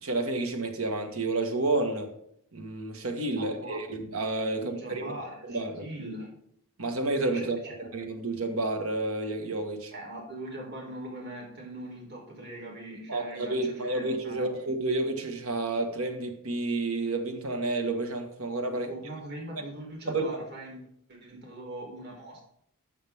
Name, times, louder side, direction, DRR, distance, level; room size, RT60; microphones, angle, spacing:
voice 1, 0.0-2.1 2.5-5.0 5.4-5.8 6.8-7.6 7.9-9.9 13.1-18.9 20.1-20.4, right 2 dB, 70° right, 1.8 m, -30 dB
voice 2, 3.4-3.8 4.6-6.3 7.3-7.7 9.9-14.5 18.7-22.4, right 1 dB, 50° right, 3.8 m, -41 dB
13.0 x 7.9 x 3.7 m
head